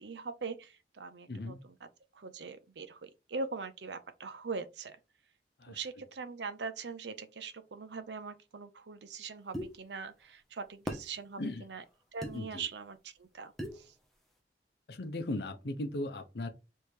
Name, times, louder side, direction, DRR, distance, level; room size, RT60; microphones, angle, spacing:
voice 1, 0.0-1.9 2.1-5.0 5.7-11.8 12.1-13.9, right 4 dB, 85° right, 0.6 m, -42 dB
voice 2, 1.3-1.6 5.6-5.8 11.4-11.7 12.3-12.6 14.9-16.5, left 2 dB, 70° left, 0.7 m, -37 dB
sound 1, 9.5-9.7 10.9-11.1 12.2-12.4 13.6-13.8, equal, ahead, 0.8 m, -37 dB
3.5 x 3.2 x 4.5 m
head